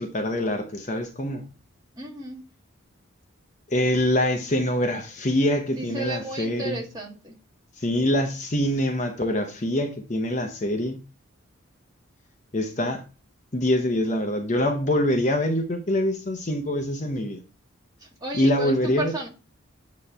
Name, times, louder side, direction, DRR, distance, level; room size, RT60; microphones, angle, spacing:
voice 1, 0.0-1.5 3.7-6.8 7.8-11.0 12.5-13.0 13.5-17.4 18.3-19.1, left 1 dB, 35° left, 0.8 m, -24 dB
voice 2, 2.0-2.4 5.8-7.3 18.0-19.3, right 2 dB, 20° right, 1.7 m, -33 dB
8.8 x 3.1 x 5.5 m
head